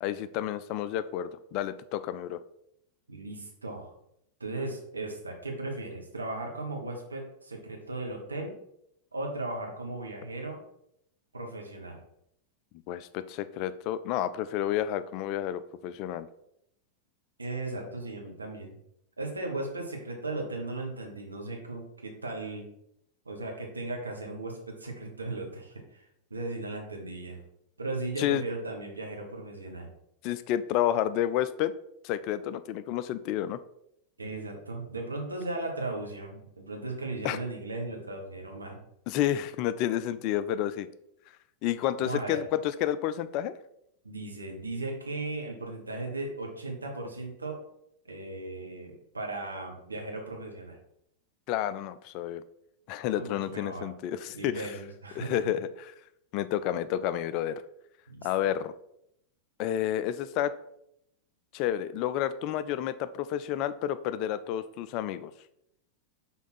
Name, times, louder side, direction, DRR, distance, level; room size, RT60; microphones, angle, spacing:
voice 1, 0.0-2.4 12.9-16.3 28.2-28.5 30.2-31.7 32.0-33.6 37.2-37.4 39.1-40.9 41.6-43.5 51.5-52.4 52.9-54.7 55.2-55.9 56.3-57.6 58.2-58.7 59.6-60.5 61.5-65.3, left 11 dB, 40° left, 13 dB, 0.4 m, -30 dB
voice 2, 3.1-3.9 4.4-8.6 9.1-10.6 11.3-12.0 17.4-18.8 19.2-22.7 23.2-26.0 26.3-27.4 27.8-29.9 34.2-38.8 42.0-42.4 44.0-47.6 48.1-50.8 53.1-53.9 54.3-55.4 58.1-58.3, right 2 dB, 80° right, 1 dB, 1.3 m, -37 dB
5.8 x 3.8 x 4.2 m, 0.76 s
figure-of-eight pair, 90°, 0 cm